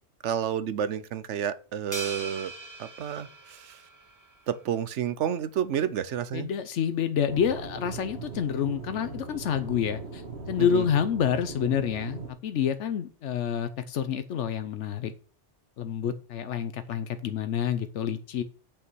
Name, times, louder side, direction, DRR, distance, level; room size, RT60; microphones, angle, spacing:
voice 1, 0.2-2.5 2.8-3.8 4.5-6.5 10.6-10.9, right 9 dB, 80° right, 1.1 m, -30 dB
sound 1, 1.9-4.4, right 2 dB, 15° right, 1.7 m, -40 dB
voice 2, 6.3-15.1 15.8-18.4, left 8 dB, 85° left, 1.0 m, -28 dB
Aircraft / Engine, 7.3-12.3, right 4 dB, 60° right, 2.0 m, -39 dB
8.7 x 5.6 x 6.2 m
omnidirectional pair, 1.2 m